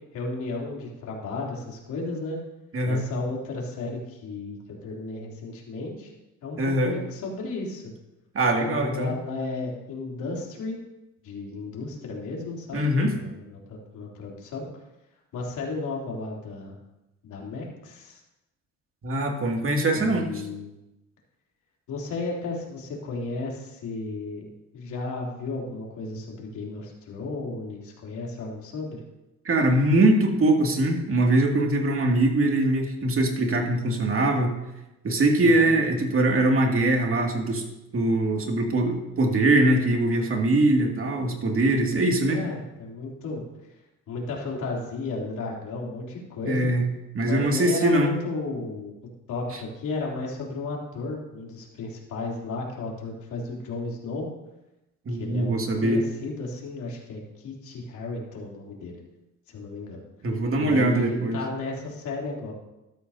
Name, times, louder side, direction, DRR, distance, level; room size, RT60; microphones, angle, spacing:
voice 1, 0.1-2.4 2.8-6.1 6.4-7.8 8.6-10.8 11.2-14.7 15.3-16.7 17.2-18.2 19.9-20.7 21.9-24.4 24.7-29.0 35.4-35.7 41.9-43.4 44.1-46.7 47.2-48.9 49.3-54.3 55.1-59.0 59.5-60.0 60.6-62.5, left 3 dB, 80° left, -2 dB, 3.3 m, -34 dB
voice 2, 6.6-7.0 8.3-9.1 12.7-13.1 19.0-20.3 29.4-34.5 35.0-37.6 37.9-42.4 46.5-46.8 47.1-48.1 55.1-56.0 60.2-61.4, right 1 dB, 45° right, 1 dB, 2.5 m, -22 dB
13.5 x 13.0 x 2.8 m, 0.95 s
cardioid pair, 90°, 30 cm